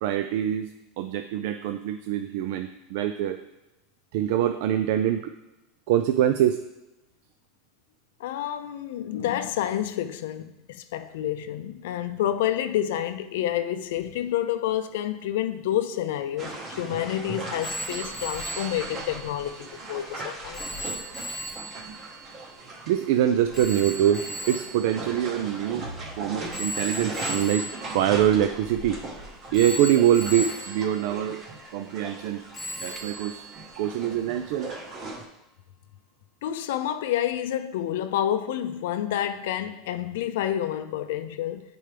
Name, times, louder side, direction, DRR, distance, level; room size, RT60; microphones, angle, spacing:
voice 1, 0.0-3.4 4.1-5.2 5.9-6.6 22.9-25.9 26.2-27.7 27.9-29.0 29.5-31.4 31.7-32.4 32.8-33.4 33.8-34.7, right 11 dB, 60° right, 0.3 m, -24 dB
voice 2, 8.2-20.6 36.4-41.6, left 11 dB, 80° left, 0.5 m, -29 dB
sound 1, 16.4-35.2, right 2 dB, 25° right, 0.9 m, -39 dB
Telephone, 17.6-26.0 26.5-29.1 29.5-32.2 32.5-34.3, right 1 dB, 5° left, 0.6 m, -38 dB
10.0 x 4.6 x 3.3 m
supercardioid pair, 170°, 0 cm